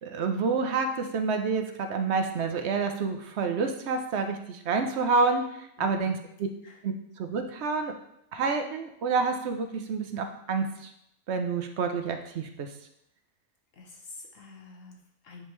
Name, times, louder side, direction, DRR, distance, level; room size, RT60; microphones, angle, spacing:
voice 1, 0.0-6.2 6.8-7.9 8.3-10.9 11.3-12.7, right 4 dB, 60° right, 6 dB, 0.9 m, -28 dB
voice 2, 5.8-6.1 6.6-6.8 13.7-15.4, left 3 dB, 65° left, 0 dB, 1.4 m, -47 dB
10.0 x 3.5 x 3.2 m, 0.76 s
omnidirectional pair, 1.5 m